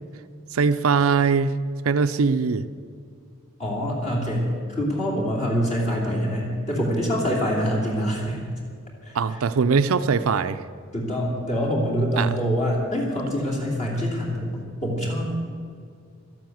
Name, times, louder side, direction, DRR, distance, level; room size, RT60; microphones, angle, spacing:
voice 1, 0.5-1.6 1.8-2.7 9.1-10.6 12.2-12.4, right 5 dB, 85° right, 10 dB, 0.5 m, -21 dB
voice 2, 3.6-8.5 9.0-9.4 10.9-15.3, equal, 35° left, -3 dB, 3.0 m, -25 dB
13.0 x 12.0 x 7.8 m, 2.2 s
head